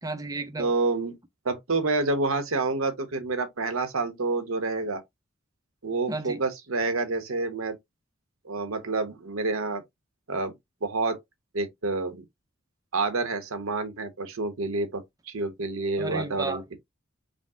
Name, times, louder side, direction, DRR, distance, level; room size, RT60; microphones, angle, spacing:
voice 1, 0.0-0.7 6.1-6.4 16.0-16.8, right 3 dB, 15° right, 0.5 m, -33 dB
voice 2, 0.6-1.2 1.4-5.0 5.8-7.8 8.4-9.8 10.3-10.5 10.8-11.2 11.5-12.2 12.9-16.8, right 3 dB, 75° right, 0.9 m, -28 dB
5.1 x 2.1 x 3.6 m
head